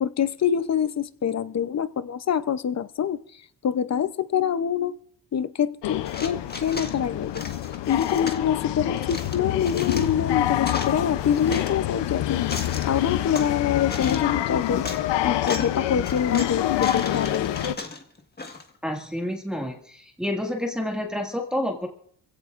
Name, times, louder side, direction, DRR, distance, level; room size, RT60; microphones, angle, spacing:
voice 1, 0.0-3.2 3.6-4.9 5.3-7.4 7.9-12.4 12.9-14.9 15.2-17.7, left 8 dB, 40° left, 14 dB, 0.7 m, -25 dB
sound 1, 5.8-17.8, left 13 dB, 80° left, 0.7 m, -27 dB
sound 2, 6.1-7.0 7.3-8.4 9.0-10.1 10.5-11.7 12.3-13.5 13.9-14.3 14.7-15.0 15.4-15.8 16.0-18.7, left 3 dB, 25° left, 1.6 m, -36 dB
voice 2, 18.8-21.9, left 1 dB, ahead, 0 dB, 1.9 m, -29 dB
26.0 x 16.5 x 2.5 m, 0.62 s
cardioid pair, 105°, 42 cm